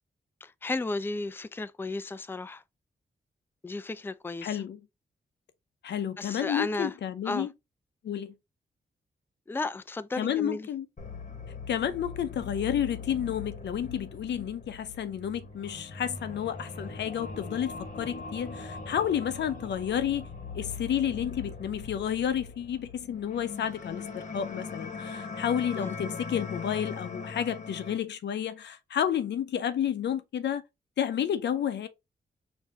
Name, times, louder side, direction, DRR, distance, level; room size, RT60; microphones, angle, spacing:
voice 1, 0.4-2.6 3.6-4.6 6.2-6.9 7.2-7.5 9.5-10.7 25.8-25.9, left 3 dB, 10° left, 0.4 m, -34 dB
voice 2, 4.4-4.8 5.8-7.5 8.0-8.3 10.2-10.9 11.7-20.3 20.5-30.6 31.0-31.9, left 9 dB, 80° left, 0.6 m, -31 dB
sound 1, 11.0-28.0, left 4 dB, 45° left, 1.3 m, -40 dB
4.5 x 2.7 x 3.5 m
cardioid pair, 60°, 18 cm